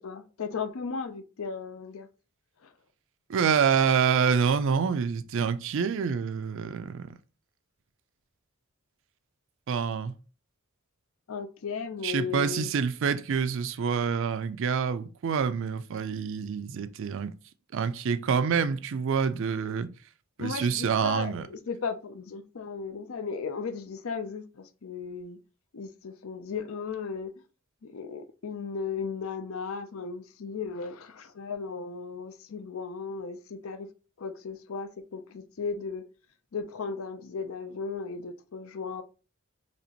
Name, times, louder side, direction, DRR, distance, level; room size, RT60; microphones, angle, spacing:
voice 1, 0.0-2.1 2.6-2.7 11.3-12.7 20.4-25.4 25.7-27.3 27.8-33.9 34.2-36.1 36.5-39.0, left 5 dB, 65° left, 0.5 m, -36 dB
voice 2, 3.3-7.1 9.7-10.1 12.0-17.4 17.7-19.9 20.4-21.5, right 6 dB, 60° right, 0.4 m, -27 dB
4.2 x 3.0 x 2.8 m
head